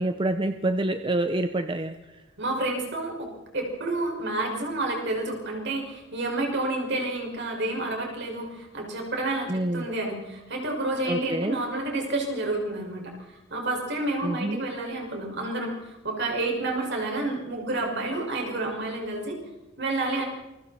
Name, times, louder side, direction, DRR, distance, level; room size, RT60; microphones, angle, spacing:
voice 1, 0.0-1.9 9.5-9.9 11.1-11.6 14.2-14.7, right 1 dB, 25° right, 8 dB, 0.9 m, -27 dB
voice 2, 2.4-3.3 3.5-19.4 19.8-20.2, right 2 dB, 60° right, 1 dB, 5.9 m, -29 dB
28.0 x 22.5 x 4.4 m, 1.1 s
head